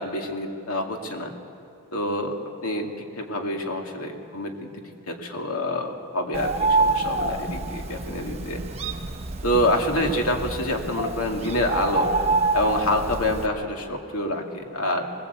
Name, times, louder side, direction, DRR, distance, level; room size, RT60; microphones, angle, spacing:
voice 1, 0.0-1.3 1.9-2.3 2.6-4.7 5.1-8.6 9.4-12.3 12.5-15.1, left 1 dB, 80° left, 2 dB, 2.5 m, -27 dB
Bird, 6.3-13.5, right 3 dB, 30° right, 1.2 m, -27 dB
21.0 x 20.5 x 8.3 m, 2.5 s
head